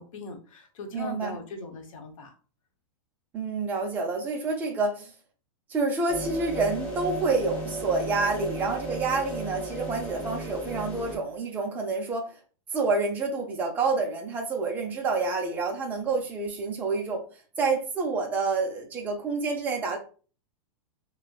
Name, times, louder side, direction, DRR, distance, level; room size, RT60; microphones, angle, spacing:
voice 1, 0.0-2.3, left 3 dB, 75° left, 0.9 m, -40 dB
voice 2, 0.9-1.4 3.3-5.1 5.7-12.4 12.7-17.3 17.6-20.0, right 3 dB, 10° right, 0.3 m, -28 dB
sound 1, 6.1-11.2, right 2 dB, 20° left, 0.8 m, -34 dB
4.0 x 2.1 x 2.2 m
supercardioid pair, 165°, 17 cm